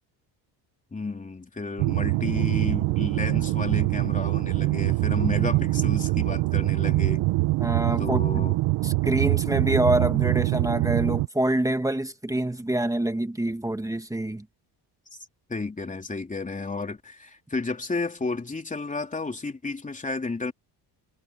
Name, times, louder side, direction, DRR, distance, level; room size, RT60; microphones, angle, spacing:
voice 1, 0.9-7.2 8.0-8.6 15.5-20.5, left 3 dB, 15° left, 3.3 m, -32 dB
sound 1, 1.8-11.3, right 21 dB, 80° right, 1.1 m, -24 dB
voice 2, 7.6-8.4 8.8-14.5, right 1 dB, 10° right, 1.9 m, -26 dB
cardioid pair, 110°, 43 cm